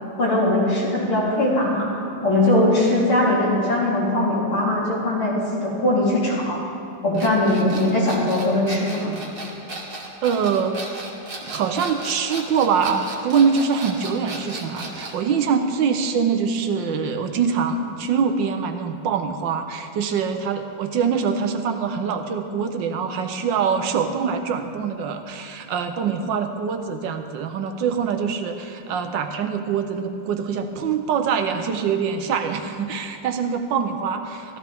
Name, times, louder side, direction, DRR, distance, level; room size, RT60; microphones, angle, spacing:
voice 1, 0.2-1.9 2.2-6.6 7.0-9.1, left 1 dB, 90° left, -7 dB, 4.3 m, -20 dB
sound 1, 7.1-15.2, right 2 dB, 30° right, 1.5 m, -35 dB
voice 2, 10.2-11.1 11.4-34.6, right 6 dB, 70° right, 6 dB, 1.4 m, -24 dB
15.0 x 14.0 x 3.5 m, 2.7 s
omnidirectional pair, 2.3 m